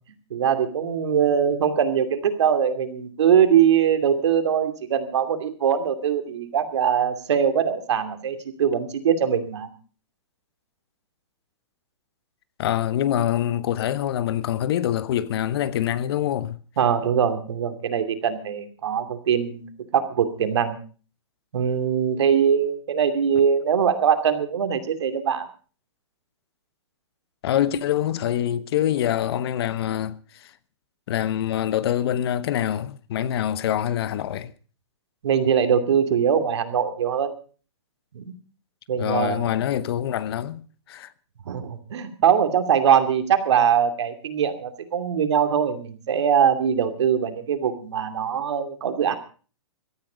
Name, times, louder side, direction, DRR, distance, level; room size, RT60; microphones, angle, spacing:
voice 1, 0.3-9.7 16.8-19.7 19.9-20.8 21.5-25.4 35.2-37.3 38.1-38.3 38.9-39.5 41.5-49.2, right 8 dB, 70° right, 2.6 m, -22 dB
voice 2, 12.6-16.6 27.4-30.5 31.1-34.5 39.0-41.1, left 11 dB, 60° left, 1.1 m, -25 dB
17.5 x 13.5 x 5.1 m
hypercardioid pair, 135°, 15 cm